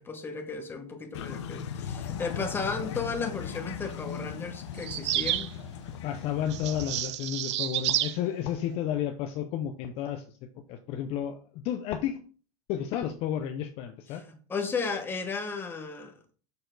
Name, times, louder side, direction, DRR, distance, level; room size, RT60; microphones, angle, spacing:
voice 1, 0.0-5.5 14.1-16.1, left 4 dB, 15° left, 1.2 m, -34 dB
sound 1, 1.1-7.0, left 7 dB, 85° left, 0.8 m, -38 dB
sound 2, 4.8-5.5 6.5-8.2, right 13 dB, 90° right, 0.5 m, -30 dB
voice 2, 6.0-10.2 10.7-12.2 12.7-14.2, left 10 dB, 45° left, 0.6 m, -32 dB
6.8 x 4.2 x 3.9 m
supercardioid pair, 140°, 14 cm